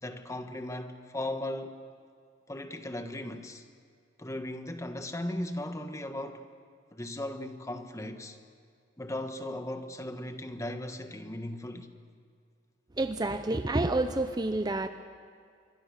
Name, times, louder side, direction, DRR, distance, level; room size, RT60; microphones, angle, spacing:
voice 1, 0.0-1.8 2.5-3.6 4.2-6.5 6.9-8.4 9.0-11.9, left 1 dB, 15° left, 1.4 m, -37 dB
voice 2, 13.0-14.9, right 2 dB, 20° right, 0.7 m, -28 dB
26.0 x 23.0 x 6.7 m
head